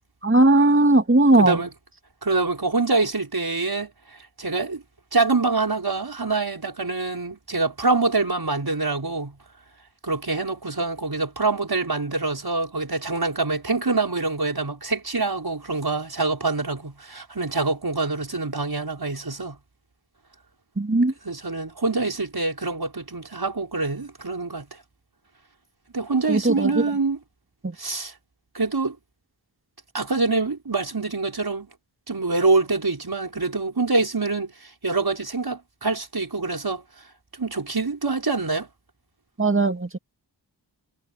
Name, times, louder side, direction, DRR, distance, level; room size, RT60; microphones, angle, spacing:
voice 1, 0.2-1.6 20.8-21.1 26.3-26.8 27.6-27.7 39.4-40.0, right 2 dB, 30° right, 2.1 m, -18 dB
voice 2, 1.4-1.7 2.2-3.9 4.4-4.8 5.1-9.4 10.0-19.6 21.2-24.6 25.9-27.2 27.8-28.1 28.5-29.0 29.9-31.7 32.1-34.5 34.8-36.8 37.4-38.7, right 3 dB, 55° right, 6.0 m, -25 dB
wide cardioid pair, 60°, 45 cm